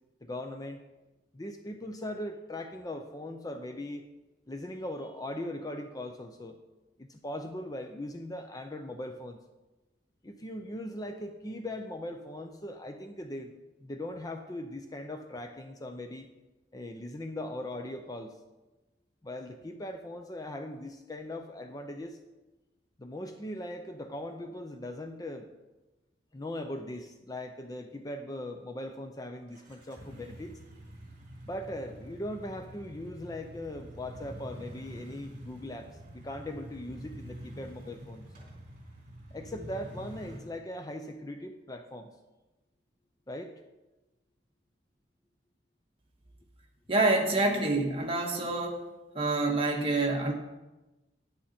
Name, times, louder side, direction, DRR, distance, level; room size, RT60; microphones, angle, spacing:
voice 1, 0.2-0.8 1.3-4.0 4.5-6.6 7.0-9.4 10.2-13.5 13.8-16.3 16.7-18.4 19.2-22.2 23.0-25.5 26.3-30.6 31.4-38.3 39.3-42.1 43.3-43.5, left 1 dB, 20° left, 6 dB, 0.6 m, -39 dB
sound 1, 29.5-40.4, right 1 dB, 50° right, 3.2 m, -47 dB
voice 2, 46.9-48.8 49.1-50.3, right 2 dB, 35° right, 0 dB, 1.7 m, -27 dB
10.0 x 9.5 x 4.3 m, 1.1 s
head